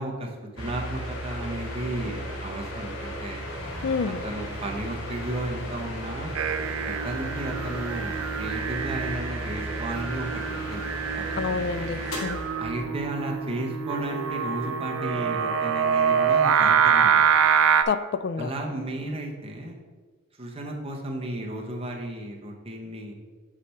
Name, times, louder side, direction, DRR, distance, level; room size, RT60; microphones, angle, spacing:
voice 1, 0.0-3.5 4.0-6.3 6.8-10.9 11.5-11.7 12.6-17.3 18.4-19.8 20.4-23.1, right 1 dB, 30° right, 1 dB, 0.9 m, -34 dB
sound 1, 0.6-13.2, equal, 85° left, 1.6 m, -35 dB
sound 2, 3.5-8.6, equal, 10° right, 1.4 m, -45 dB
voice 2, 3.8-4.2 11.4-12.4 17.9-18.5, left 5 dB, 50° left, 13 dB, 0.3 m, -28 dB
Singing, 6.3-17.8, right 7 dB, 80° right, 0.4 m, -25 dB
7.3 x 3.4 x 5.6 m, 1.4 s
head